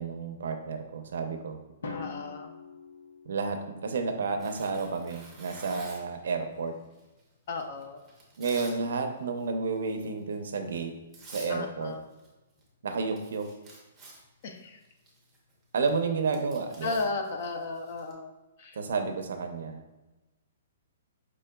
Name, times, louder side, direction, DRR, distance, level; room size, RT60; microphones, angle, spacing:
voice 1, 0.0-1.6 3.3-6.7 8.4-10.9 11.3-11.9 12.8-13.5 15.7-17.0 18.8-19.8, right 4 dB, 70° right, 6 dB, 0.5 m, -31 dB
Drum, 1.8-3.8, left 3 dB, 85° left, 0.7 m, -42 dB
voice 2, 1.9-2.5 7.5-8.0 11.5-12.0 14.4-14.8 16.8-18.3 18.6-18.8, left 3 dB, 45° left, 5 dB, 0.5 m, -34 dB
Tearing, 4.4-6.2 6.9-8.8 9.1-9.5 9.9-10.1 10.8-10.9 11.1-11.5 11.8-12.3 12.6-12.7 12.9-18.1, right 2 dB, 5° right, 0.7 m, -50 dB
5.0 x 3.8 x 2.2 m, 1.1 s
hypercardioid pair, 170°, 0 cm